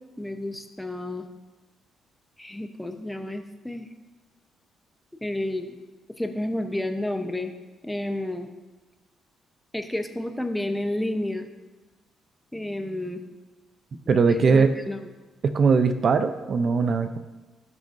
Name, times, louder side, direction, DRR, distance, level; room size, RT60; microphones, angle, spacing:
voice 1, 0.2-1.3 2.4-3.9 5.2-5.7 6.2-7.5 7.8-8.5 9.7-11.5 12.5-13.2 14.4-15.0, left 1 dB, 5° left, 6 dB, 0.8 m, -30 dB
voice 2, 14.1-14.7 15.4-17.2, right 5 dB, 50° right, 9 dB, 0.5 m, -20 dB
18.0 x 6.1 x 2.6 m, 1.2 s
cardioid pair, 90°, 0 cm